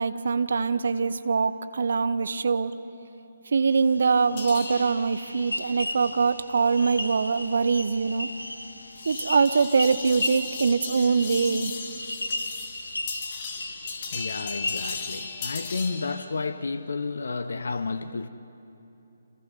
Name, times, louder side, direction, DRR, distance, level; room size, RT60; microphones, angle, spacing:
voice 1, 0.0-2.7 3.5-8.3 9.0-11.7, right 5 dB, 55° right, 1.0 m, -23 dB
sound 1, 3.7-15.3, left 1 dB, 80° left, 1.8 m, -36 dB
sound 2, 4.4-16.2, left 5 dB, 35° left, 2.4 m, -38 dB
voice 2, 13.5-18.3, left 4 dB, 60° left, 0.9 m, -32 dB
30.0 x 27.5 x 5.4 m
figure-of-eight pair, 135°, 0 cm